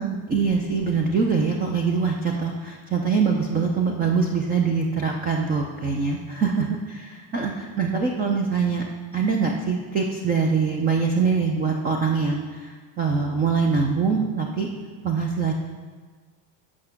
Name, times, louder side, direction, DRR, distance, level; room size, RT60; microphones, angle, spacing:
voice 1, 0.0-8.8 9.1-14.7 15.0-15.5, right 5 dB, 20° right, 2 dB, 0.3 m, -23 dB
8.7 x 5.9 x 5.8 m, 1.5 s
cardioid pair, 175°, 47 cm